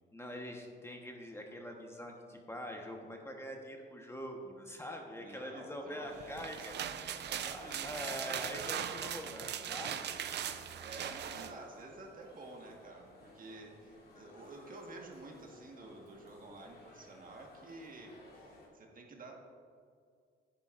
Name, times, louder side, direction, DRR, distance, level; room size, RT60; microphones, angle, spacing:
voice 1, 0.1-7.2 7.5-10.3, equal, 15° left, 1 dB, 1.1 m, -44 dB
voice 2, 5.2-6.7 7.0-8.1 10.8-18.1 18.7-19.3, right 2 dB, 45° right, 1 dB, 1.5 m, -50 dB
sound 1, 6.2-11.5, right 9 dB, 60° right, 0.5 m, -39 dB
sound 2, 6.4-18.7, left 2 dB, 50° left, 2.2 m, -58 dB
10.0 x 10.0 x 2.5 m, 2.2 s
cardioid pair, 90°, 20 cm